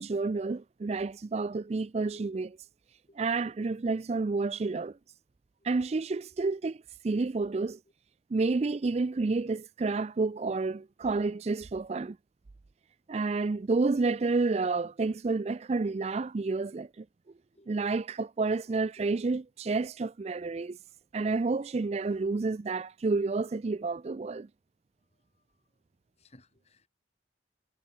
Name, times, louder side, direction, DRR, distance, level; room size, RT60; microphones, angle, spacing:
voice 1, 0.0-2.6 3.2-5.0 5.6-7.8 8.3-12.2 13.1-17.1 17.7-20.8 21.1-24.5, right 3 dB, 35° right, 0.4 m, -30 dB
voice 2, 25.1-25.5 26.2-26.9, left 1 dB, 35° left, 6.1 m, -61 dB
head